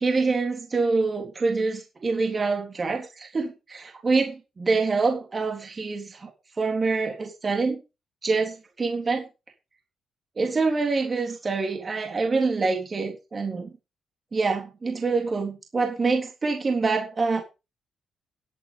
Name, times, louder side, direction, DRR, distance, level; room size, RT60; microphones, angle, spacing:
voice 1, 0.0-6.3 6.6-7.8 8.2-9.3 10.4-13.7 14.3-17.4, right 4 dB, 30° right, 3 dB, 3.6 m, -26 dB
13.0 x 8.7 x 5.3 m, 0.29 s
cardioid pair, 125°, 0 cm